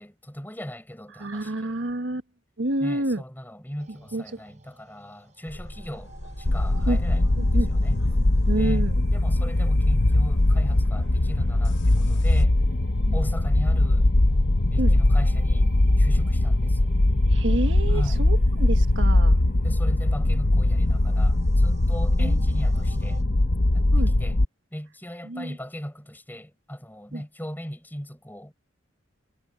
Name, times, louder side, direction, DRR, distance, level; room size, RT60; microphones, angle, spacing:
voice 1, 0.0-1.8 2.8-8.0 8.6-12.6 13.1-14.1 14.7-15.7 16.0-16.9 17.9-18.2 19.6-23.2 23.7-24.4 24.7-28.5, equal, 10° left, 7.1 m, -38 dB
voice 2, 1.2-2.2 2.6-3.2 4.1-4.4 6.9-7.0 7.4-7.7 8.5-9.0 13.0-13.2 14.8-14.9 17.3-19.4 22.2-22.4 23.9-24.1 25.3-25.6 27.1-27.2, right 2 dB, 75° right, 1.5 m, -29 dB
sound 1, 3.8-23.2, right 3 dB, 35° right, 6.1 m, -55 dB
sound 2, 5.5-12.4, left 1 dB, 85° left, 5.1 m, -42 dB
sound 3, 6.5-24.4, left 1 dB, 55° left, 1.0 m, -21 dB
head